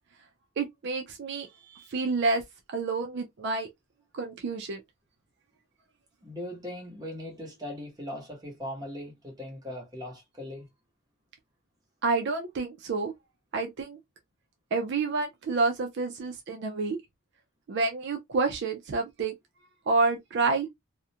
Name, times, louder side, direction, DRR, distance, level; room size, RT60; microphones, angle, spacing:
voice 1, 0.6-2.4 2.7-3.7 4.1-4.8 12.0-13.1 13.5-14.0 14.7-17.0 17.7-19.3 19.9-20.7, right 3 dB, 55° right, 0.4 m, -29 dB
voice 2, 6.2-10.7, left 1 dB, 20° right, 0.9 m, -39 dB
2.4 x 2.1 x 2.7 m
head